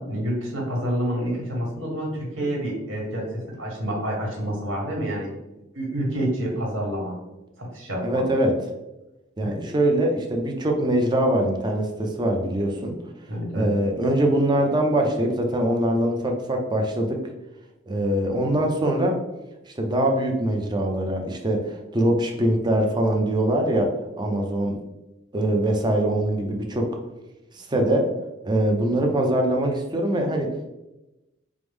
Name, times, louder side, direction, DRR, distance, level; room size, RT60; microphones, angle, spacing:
voice 1, 0.0-5.3 5.7-7.1 7.6-8.2 9.4-9.6 13.3-13.7, right 1 dB, 80° right, -2 dB, 1.4 m, -28 dB
voice 2, 8.0-8.5 9.4-13.0 13.5-17.2 17.9-19.2 19.7-23.9 24.2-24.8 25.3-26.9 27.5-28.1 28.4-30.5, right 1 dB, 25° right, 2 dB, 0.6 m, -23 dB
4.8 x 2.1 x 3.5 m, 0.98 s
head